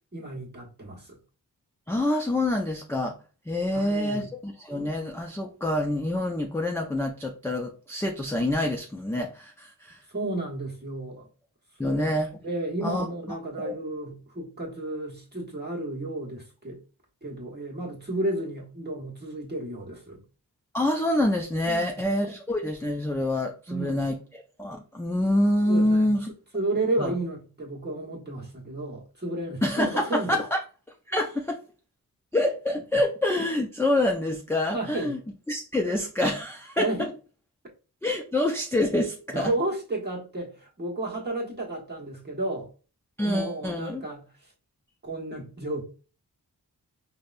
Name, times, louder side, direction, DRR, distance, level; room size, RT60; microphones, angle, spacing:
voice 1, 0.1-1.2 3.7-4.3 10.1-11.3 11.8-12.1 12.4-16.8 17.2-20.2 21.6-21.9 23.7-24.1 25.7-26.1 26.5-30.4 34.7-35.1 36.8-37.1 39.3-42.7 43.2-44.5 45.0-45.8, right 2 dB, 25° right, 1.2 m, -32 dB
voice 2, 1.9-3.2 3.5-10.0 11.8-12.4 12.8-13.1 13.6-13.7 20.7-26.3 27.0-27.1 29.6-30.6 31.1-31.6 32.3-35.2 35.5-36.9 38.0-39.5 43.2-44.1, left 1 dB, 5° left, 0.3 m, -26 dB
5.1 x 2.1 x 2.5 m
wide cardioid pair, 115°, 39 cm